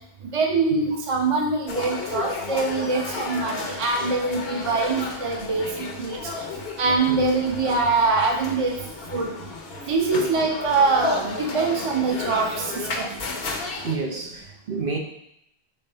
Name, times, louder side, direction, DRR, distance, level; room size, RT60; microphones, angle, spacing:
voice 1, 0.3-6.2 6.8-8.7 9.1-9.3 9.9-13.1, right 3 dB, 35° right, 2 dB, 0.9 m, -23 dB
sound 1, 1.7-14.0, left 3 dB, 70° left, 1.1 m, -33 dB
voice 2, 13.8-15.0, right 4 dB, 60° right, 0 dB, 1.0 m, -29 dB
5.6 x 3.8 x 5.5 m, 0.75 s
omnidirectional pair, 1.0 m